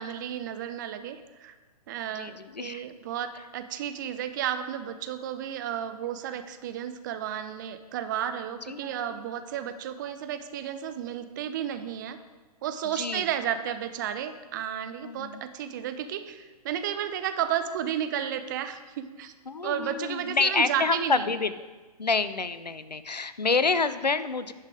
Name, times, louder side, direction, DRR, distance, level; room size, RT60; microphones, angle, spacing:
voice 1, 0.0-1.5 1.9-12.2 12.6-19.3 19.6-21.3, right 10 dB, 30° right, 10 dB, 0.5 m, -32 dB
voice 2, 2.1-2.8 8.7-9.2 12.9-13.3 15.0-15.4 19.5-21.5 22.0-24.5, left 4 dB, 90° left, 13 dB, 0.6 m, -28 dB
10.0 x 5.7 x 4.9 m, 1.3 s
figure-of-eight pair, 120°, 21 cm